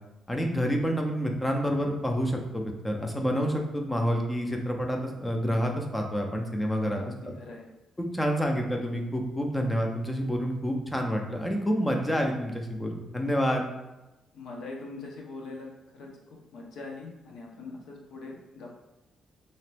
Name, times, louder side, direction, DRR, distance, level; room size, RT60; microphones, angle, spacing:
voice 1, 0.3-7.0 8.0-13.7, equal, 10° left, 2 dB, 0.4 m, -28 dB
voice 2, 6.9-7.7 14.3-18.8, left 3 dB, 75° left, -1 dB, 0.8 m, -42 dB
3.3 x 2.8 x 3.3 m, 1.0 s
cardioid pair, 165°, 0 cm